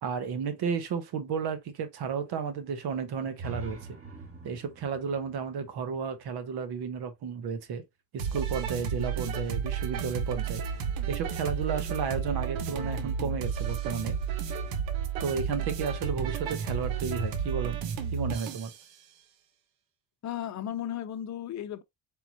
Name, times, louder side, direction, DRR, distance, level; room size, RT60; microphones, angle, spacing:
voice 1, 0.0-4.0 4.4-7.8 8.1-10.6 11.1-14.1 15.2-18.7, right 6 dB, 60° right, 1.3 m, -33 dB
sound 1, 3.3-7.2, right 2 dB, 30° right, 2.2 m, -44 dB
sound 2, 8.2-18.8, right 6 dB, 80° right, 1.0 m, -32 dB
voice 2, 20.2-21.8, left 11 dB, 40° left, 0.7 m, -35 dB
4.3 x 3.7 x 2.7 m
supercardioid pair, 70°, 43 cm